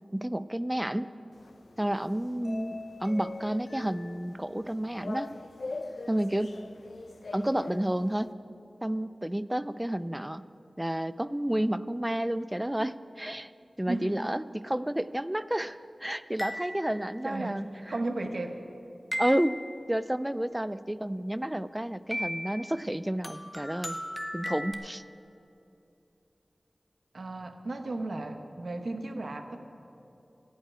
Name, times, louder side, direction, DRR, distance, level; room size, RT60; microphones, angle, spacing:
voice 1, 0.1-1.1 1.8-5.3 6.1-6.6 7.3-8.3 8.8-10.4 10.8-13.5 13.8-17.6 19.2-24.0 24.3-25.0, right 1 dB, 10° right, 15 dB, 0.3 m, -30 dB
sound 1, 1.3-8.3, left 3 dB, 80° left, 0.4 m, -42 dB
voice 2, 13.9-14.2 17.2-18.6 27.1-29.6, right 2 dB, 75° right, 6 dB, 0.9 m, -35 dB
sound 2, 16.4-17.2 19.1-19.8 22.1-22.7 23.2-24.7, equal, 5° left, 0.8 m, -36 dB
15.5 x 5.7 x 8.8 m, 2.8 s
wide cardioid pair, 75°, 0 cm